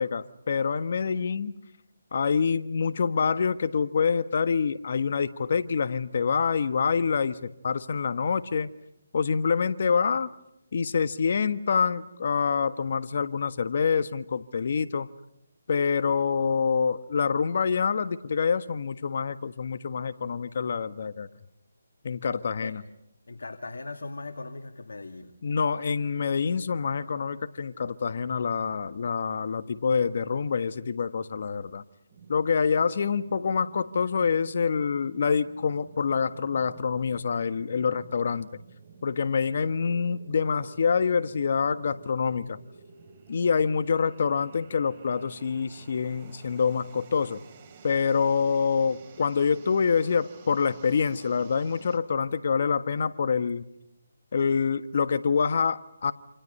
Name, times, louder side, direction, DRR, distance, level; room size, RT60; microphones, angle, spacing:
voice 1, 0.0-1.6 2.1-8.7 9.1-10.3 10.7-15.1 15.7-21.3 22.0-22.8 25.4-31.8 32.3-38.5 39.0-42.6 43.3-47.4 47.8-53.7 54.3-56.1, left 6 dB, 55° left, 12 dB, 1.4 m, -26 dB
voice 2, 23.3-25.3, left 3 dB, 75° left, 5 dB, 2.3 m, -39 dB
sound 1, 32.1-52.0, right 5 dB, 30° right, 3.7 m, -51 dB
28.5 x 27.5 x 5.5 m, 0.82 s
figure-of-eight pair, 155°, 0 cm